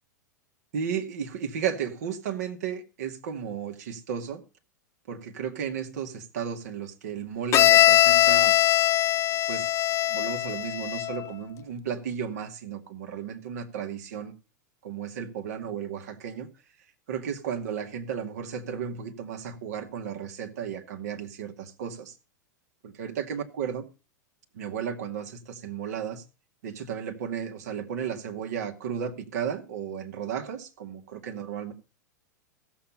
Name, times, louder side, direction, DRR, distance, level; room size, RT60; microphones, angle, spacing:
voice 1, 0.7-4.4 5.1-8.6 9.5-9.7 10.1-14.3 14.8-16.5 17.1-22.2 22.8-23.9 24.5-26.2 26.6-31.7, right 8 dB, 60° right, 2.2 m, -34 dB
Bowed string instrument, 7.5-11.3, left 13 dB, 30° left, 0.6 m, -21 dB
16.0 x 7.2 x 5.5 m
figure-of-eight pair, 95°, 10 cm